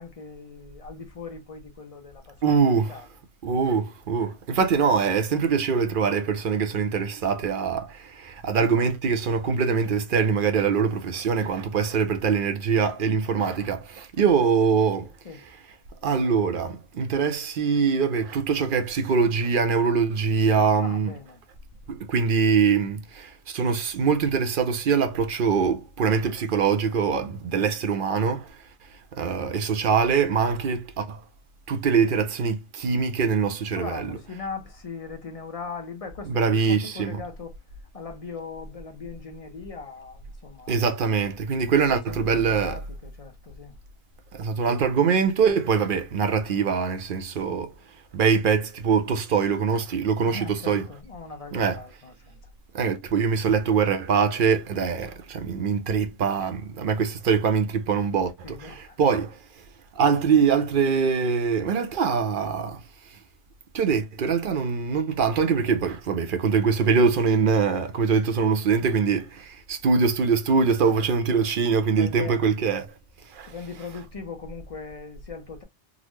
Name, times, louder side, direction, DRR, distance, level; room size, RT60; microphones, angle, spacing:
voice 1, 0.0-2.6 2.9-3.1 15.2-15.4 20.8-21.4 27.5-27.7 33.8-37.5 37.9-40.9 41.8-43.7 50.3-52.4 58.4-59.0 70.8-70.9 72.0-72.5 73.5-75.6, left 4 dB, 45° left, 0.5 m, -39 dB
voice 2, 2.4-2.9 3.4-15.1 16.0-21.1 21.9-28.5 29.2-31.2 31.7-34.2 36.3-37.2 40.7-42.8 44.3-47.7 48.1-50.9 51.5-51.8 52.7-59.3 60.0-62.8 63.7-72.9 73.3-73.5, right 6 dB, 55° right, 0.6 m, -23 dB
3.8 x 2.0 x 3.1 m
omnidirectional pair, 1.2 m